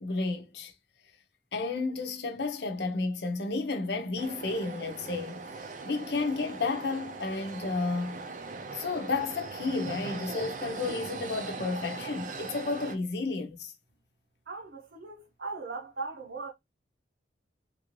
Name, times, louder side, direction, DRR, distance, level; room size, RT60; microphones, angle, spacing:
voice 1, 0.0-0.7 1.5-5.5 5.8-8.2 8.7-13.7, left 3 dB, 65° left, 0.7 m, -32 dB
sound 1, 4.2-12.9, right 3 dB, 45° right, 0.5 m, -40 dB
voice 2, 14.5-16.5, right 3 dB, 70° right, 0.8 m, -39 dB
3.6 x 2.6 x 3.0 m
head